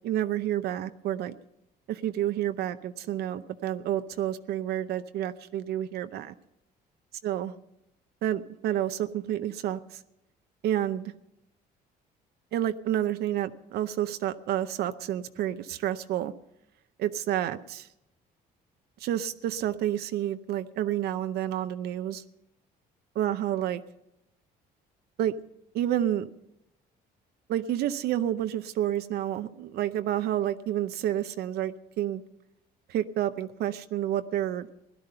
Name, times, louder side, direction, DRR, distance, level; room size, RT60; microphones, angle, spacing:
voice 1, 0.0-1.3 1.9-6.3 7.2-7.5 8.2-9.8 10.6-11.1 12.5-16.3 17.0-17.9 19.0-22.2 23.2-23.8 25.2-25.3 25.7-26.3 27.5-32.2 32.9-34.7, right 11 dB, 70° right, 10 dB, 0.7 m, -29 dB
17.0 x 11.5 x 5.6 m, 0.86 s
cardioid pair, 110°, 17 cm